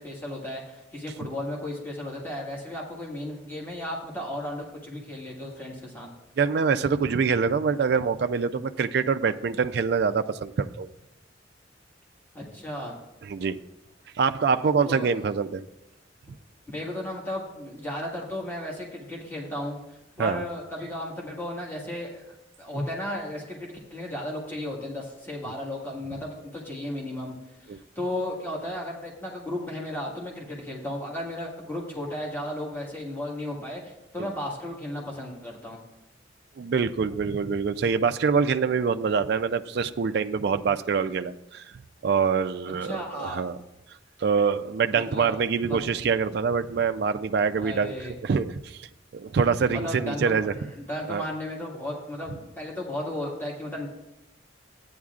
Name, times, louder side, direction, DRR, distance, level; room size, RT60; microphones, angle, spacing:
voice 1, 0.0-6.1 12.3-13.0 14.9-15.2 16.7-22.2 22.6-27.3 27.7-35.8 42.8-43.5 45.0-45.4 45.7-45.8 47.6-48.2 49.7-53.9, left 1 dB, 10° left, -2 dB, 1.6 m, -34 dB
voice 2, 6.4-10.9 13.2-13.6 14.2-15.6 20.2-20.4 27.7-27.8 34.2-34.3 36.6-41.7 42.0-43.6 44.2-47.9 48.2-48.9 49.1-50.5 51.1-51.2, right 5 dB, 55° right, 8 dB, 0.3 m, -25 dB
14.0 x 9.4 x 2.4 m, 0.92 s
head